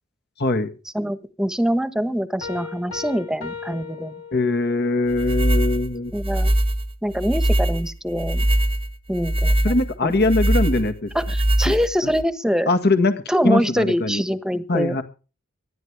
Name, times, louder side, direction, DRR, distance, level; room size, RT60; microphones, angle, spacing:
voice 1, 0.4-0.7 4.3-6.1 9.6-11.1 11.7-11.8 12.7-13.1 13.4-14.2 14.7-15.0, left 2 dB, 55° left, 9 dB, 1.9 m, -21 dB
voice 2, 0.9-4.2 6.1-6.5 7.0-8.5 9.1-9.7 10.0-10.1 11.1-12.7 13.3-15.0, equal, 5° right, 12 dB, 1.3 m, -24 dB
sound 1, 2.4-4.9, left 5 dB, 85° left, 3.7 m, -36 dB
sound 2, 5.1-12.2, right 1 dB, 25° right, 1.1 m, -22 dB
25.0 x 11.5 x 3.5 m, 0.35 s
head